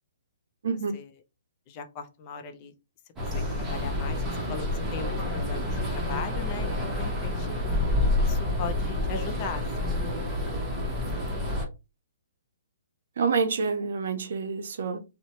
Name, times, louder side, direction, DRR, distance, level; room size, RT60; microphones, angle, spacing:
voice 1, 1.7-2.7 3.3-7.5 8.2-9.9, left 6 dB, 35° left, 0.5 m, -39 dB
sound 1, 3.2-11.6, left 2 dB, 15° right, 0.8 m, -28 dB
voice 2, 13.2-15.0, right 5 dB, 65° right, 0.5 m, -27 dB
2.7 x 2.1 x 2.8 m
hypercardioid pair, 140°, 0 cm